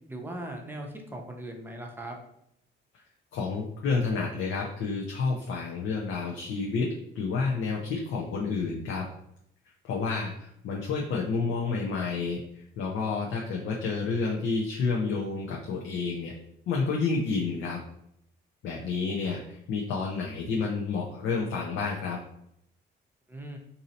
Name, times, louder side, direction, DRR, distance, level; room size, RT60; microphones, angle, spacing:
voice 1, 0.1-2.2 23.3-23.6, right 1 dB, 10° right, 1 dB, 0.7 m, -39 dB
voice 2, 3.3-6.9 7.1-9.0 9.8-16.3 16.7-17.8 18.6-22.2, left 4 dB, 75° left, -2 dB, 0.6 m, -30 dB
2.7 x 2.7 x 4.1 m, 0.74 s
cardioid pair, 90°, 20 cm